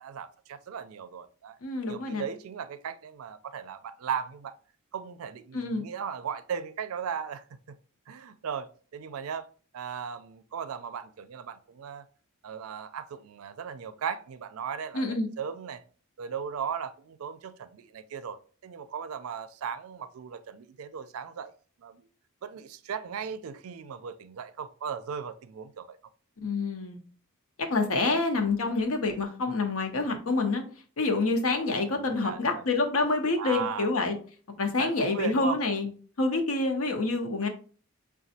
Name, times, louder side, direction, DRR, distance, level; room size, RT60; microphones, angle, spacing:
voice 1, 0.0-1.6 1.9-4.5 4.9-7.8 8.1-9.5 9.7-12.1 12.4-15.8 16.2-21.5 21.8-22.1 22.4-26.0 31.1-31.3 31.9-32.6 33.4-33.9 34.8-35.6, right 7 dB, 90° right, 0.4 m, -37 dB
voice 2, 1.6-2.2 5.5-5.8 14.9-15.3 26.4-27.0 27.7-30.6 31.0-34.2 34.6-35.9 36.2-37.5, left 3 dB, 85° left, 0.8 m, -27 dB
6.0 x 2.3 x 2.7 m
head